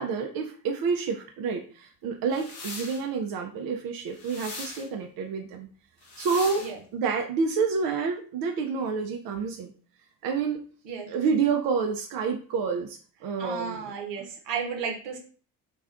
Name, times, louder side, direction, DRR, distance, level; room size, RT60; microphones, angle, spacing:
voice 1, 0.0-5.7 6.2-9.7 10.2-10.6 11.1-13.9 14.2-14.3, right 5 dB, 55° right, 3 dB, 0.5 m, -29 dB
sound 1, 2.3-3.0 4.1-4.9 6.0-6.7, left 3 dB, 85° left, 0.8 m, -40 dB
voice 2, 13.4-15.2, right 6 dB, 70° right, 2 dB, 0.9 m, -33 dB
2.4 x 2.1 x 2.4 m, 0.42 s
hypercardioid pair, 50°, 44 cm